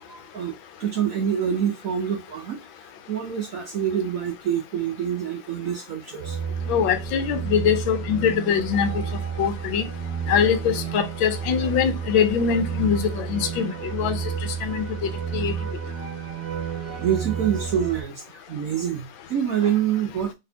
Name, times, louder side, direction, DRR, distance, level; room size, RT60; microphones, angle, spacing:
voice 1, 0.1-6.4 15.9-16.0 17.0-20.3, right 9 dB, 70° right, 0.8 m, -26 dB
sound 1, 6.2-18.0, right 7 dB, 35° right, 1.3 m, -31 dB
voice 2, 6.7-8.9 9.4-9.9 10.3-15.5, left 7 dB, 80° left, 1.4 m, -23 dB
4.0 x 3.4 x 2.8 m
omnidirectional pair, 2.1 m